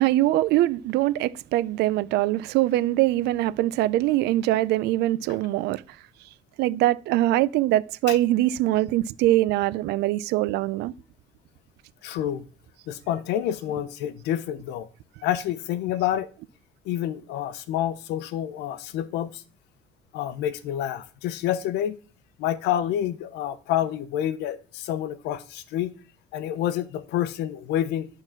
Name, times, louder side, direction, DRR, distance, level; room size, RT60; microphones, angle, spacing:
voice 1, 0.0-5.8 6.6-10.9, right 15 dB, 85° right, 0.4 m, -23 dB
voice 2, 12.0-12.4 12.9-14.9 15.2-16.3 16.8-19.4 20.1-22.0 22.4-25.9 26.3-28.1, left 11 dB, 90° left, 0.8 m, -28 dB
9.0 x 3.8 x 5.8 m
cardioid pair, 110°, 17 cm